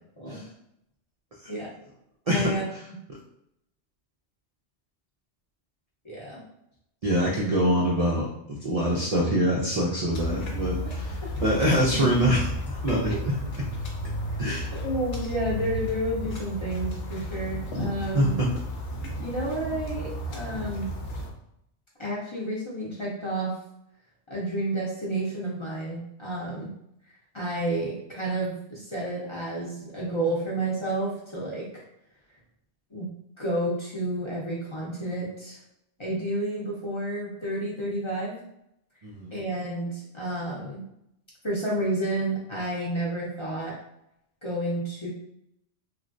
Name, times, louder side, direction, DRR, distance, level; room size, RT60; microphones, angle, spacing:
voice 1, 0.2-0.5 1.5-1.7 2.3-2.6 6.0-6.4 13.1-13.2 14.8-18.4 19.2-20.9 22.0-23.6 24.3-26.7 27.3-31.7 32.9-33.1 33.4-35.6 36.0-38.4 39.3-40.8 41.4-43.8 44.4-45.1, right 1 dB, 30° left, -6 dB, 0.7 m, -30 dB
voice 2, 7.0-12.5 12.8-13.1 14.4-14.7 18.0-18.5 39.0-39.3, equal, 50° right, -3 dB, 0.4 m, -25 dB
sound 1, 10.1-21.3, left 1 dB, 80° left, 1.0 m, -33 dB
3.1 x 2.4 x 2.5 m, 0.78 s
omnidirectional pair, 1.2 m